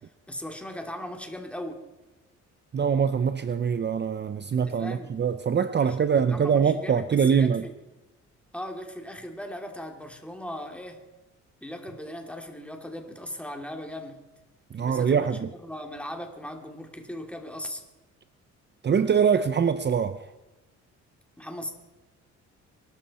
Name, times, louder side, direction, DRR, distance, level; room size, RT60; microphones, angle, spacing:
voice 1, 0.3-1.8 4.5-5.1 5.8-7.7 8.5-11.0 11.6-14.3 14.8-15.3 15.6-17.8 21.4-21.7, left 1 dB, 5° left, 3 dB, 2.8 m, -38 dB
voice 2, 2.7-7.6 14.7-15.5 18.8-20.3, right 7 dB, 35° right, 12 dB, 0.7 m, -23 dB
23.0 x 13.0 x 4.3 m, 1.1 s
cardioid pair, 90°, 30 cm